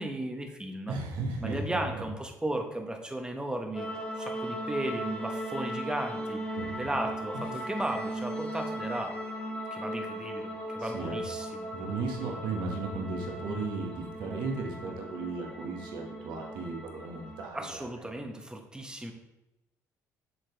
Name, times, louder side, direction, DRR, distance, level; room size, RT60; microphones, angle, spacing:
voice 1, 0.0-0.9 1.4-3.9 4.2-6.4 6.8-9.2 9.7-11.7 17.5-19.1, right 1 dB, 10° right, 3 dB, 1.5 m, -35 dB
voice 2, 0.9-2.0 6.6-6.7 7.3-7.4 10.8-11.2 11.7-17.9, right 3 dB, 65° right, 0 dB, 1.8 m, -35 dB
sound 1, 3.7-17.5, right 1 dB, 10° left, 1.7 m, -38 dB
7.7 x 6.5 x 3.5 m, 0.96 s
hypercardioid pair, 55°, 8 cm